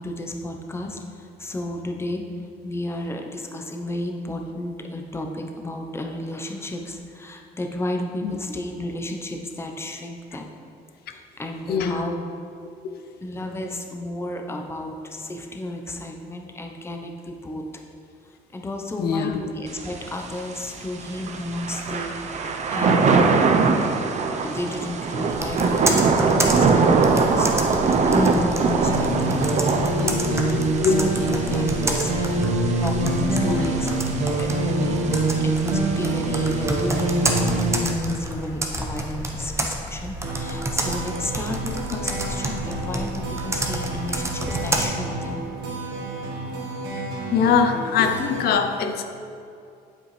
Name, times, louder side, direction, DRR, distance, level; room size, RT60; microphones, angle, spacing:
voice 1, 0.0-2.2 2.6-10.5 11.1-12.2 13.2-17.7 18.5-23.5 24.4-27.7 28.1-30.2 30.9-34.9 35.4-45.4, left 1 dB, 15° left, 2 dB, 0.8 m, -32 dB
voice 2, 11.7-12.1 12.9-13.0 19.0-19.4 29.5-29.6 30.0-31.1 33.3-33.7 35.9-36.0 46.9-47.0 47.3-49.0, left 6 dB, 70° left, 6 dB, 0.6 m, -23 dB
Thunder / Rain, 19.7-37.9, right 4 dB, 45° right, 0.7 m, -24 dB
Computer keyboard, 25.3-44.8, right 1 dB, 15° right, 1.0 m, -30 dB
sound 1, 28.8-37.8 40.2-48.5, right 2 dB, 90° right, 1.5 m, -26 dB
8.8 x 7.5 x 3.3 m, 2.5 s
cardioid pair, 110°, 17 cm